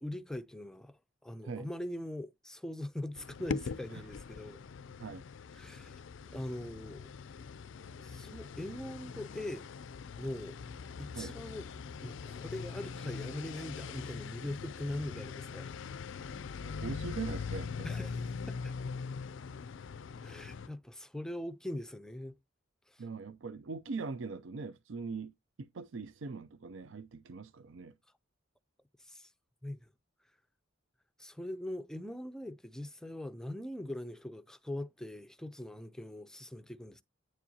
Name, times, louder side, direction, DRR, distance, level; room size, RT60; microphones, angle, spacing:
voice 1, 0.0-4.6 5.5-6.0 6.3-7.1 8.0-9.7 10.2-10.6 11.0-11.7 12.0-15.7 17.8-18.7 20.2-22.3 22.9-23.0 29.0-29.3 29.6-29.8 31.2-37.0, left 1 dB, 5° left, 0.4 m, -41 dB
sound 1, 3.2-20.7, left 5 dB, 60° left, 0.4 m, -42 dB
voice 2, 16.6-17.9 23.0-25.3 25.6-27.9, right 4 dB, 65° right, 0.5 m, -41 dB
9.1 x 7.3 x 2.7 m
head